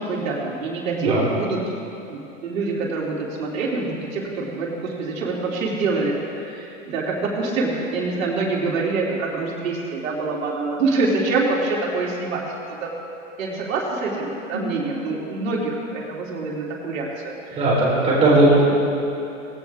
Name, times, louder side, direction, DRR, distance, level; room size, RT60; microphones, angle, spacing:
voice 1, 0.0-1.6 2.1-13.0 13.4-17.6 18.1-18.2, right 3 dB, 80° right, -3 dB, 3.3 m, -26 dB
voice 2, 0.9-1.3 14.5-14.6 17.5-18.7, right 2 dB, 15° right, -6 dB, 4.1 m, -17 dB
18.0 x 17.0 x 3.6 m, 2.8 s
supercardioid pair, 165°, 39 cm